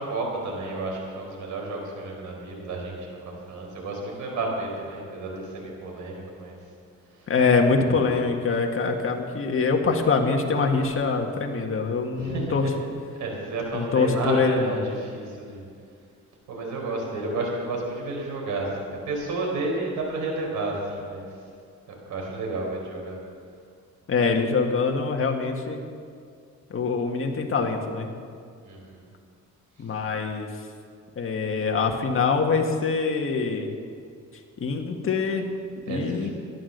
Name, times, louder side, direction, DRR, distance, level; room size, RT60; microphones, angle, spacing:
voice 1, 0.0-6.6 7.1-7.3 12.2-12.7 13.2-15.7 16.5-21.3 21.9-23.2 28.6-29.0 35.9-36.3, right 2 dB, 80° right, -1 dB, 4.5 m, -31 dB
voice 2, 7.3-12.7 13.7-14.8 24.1-25.8 26.7-28.1 29.8-30.5 31.2-33.7 34.6-35.5 35.9-36.3, left 4 dB, 45° left, 3 dB, 1.9 m, -24 dB
14.0 x 11.0 x 6.8 m, 2.2 s
cardioid pair, 90°, 30 cm